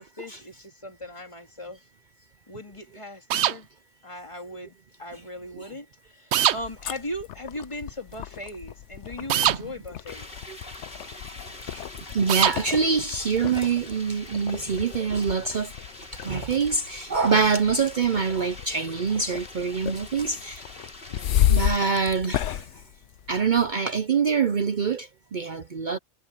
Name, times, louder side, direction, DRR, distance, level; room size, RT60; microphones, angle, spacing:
voice 1, 0.0-1.8 2.5-3.7 4.0-10.5 21.1-21.4, left 1 dB, 25° left, 2.4 m, -39 dB
sound 1, 3.3-3.6 6.3-6.6 9.3-9.6 12.3-12.6, right 11 dB, 75° right, 0.9 m, -21 dB
sound 2, 6.5-23.7, left 11 dB, 85° left, 1.0 m, -32 dB
sound 3, 10.1-21.7, left 2 dB, 55° left, 4.4 m, -44 dB
voice 2, 12.1-15.7 16.2-20.6 21.5-22.7 23.3-26.0, right 5 dB, 50° right, 0.8 m, -25 dB
omnidirectional pair, 1.2 m